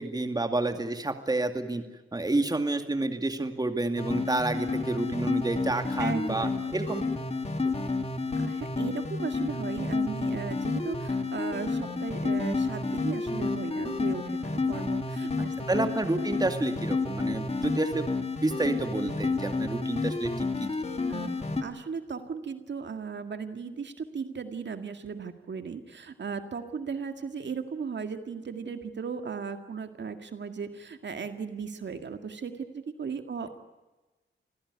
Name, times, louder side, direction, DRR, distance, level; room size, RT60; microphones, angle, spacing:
voice 1, 0.0-1.8 2.1-7.0 7.6-7.7 15.7-18.1 18.4-20.5, right 2 dB, 20° right, 7 dB, 2.2 m, -29 dB
sound 1, 4.0-21.6, left 3 dB, 30° left, 2.6 m, -30 dB
voice 2, 6.0-6.5 8.4-15.5 21.1-21.3 21.6-33.5, right 5 dB, 60° right, 7 dB, 2.0 m, -36 dB
27.0 x 16.5 x 9.6 m, 1.2 s
wide cardioid pair, 125°, 21 cm